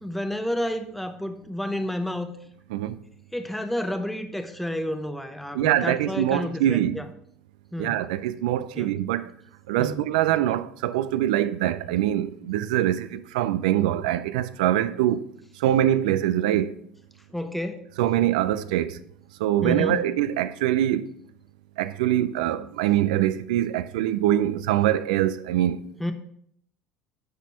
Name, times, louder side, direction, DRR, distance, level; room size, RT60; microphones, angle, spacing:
voice 1, 0.0-2.3 3.3-7.1 7.7-8.0 8.8-8.9 9.8-10.0 17.3-17.9 19.6-20.0 26.0-26.1, left 1 dB, 5° left, 0.7 m, -30 dB
voice 2, 5.5-7.0 7.8-9.3 9.7-15.2 15.6-16.7 18.0-19.0 19.4-21.1 21.8-25.8, right 12 dB, 75° right, 0.4 m, -24 dB
9.4 x 4.2 x 4.4 m
hypercardioid pair, 70°, 4 cm